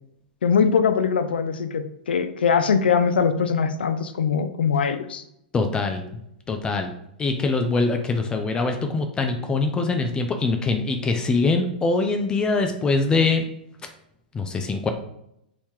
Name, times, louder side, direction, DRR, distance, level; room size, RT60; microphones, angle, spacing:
voice 1, 0.4-5.2, left 6 dB, 90° left, 9 dB, 0.4 m, -22 dB
voice 2, 5.5-6.2 6.5-6.9 7.2-13.4 14.3-14.9, left 3 dB, 15° left, 5 dB, 0.3 m, -23 dB
3.0 x 2.7 x 3.5 m, 0.79 s
hypercardioid pair, 135°, 5 cm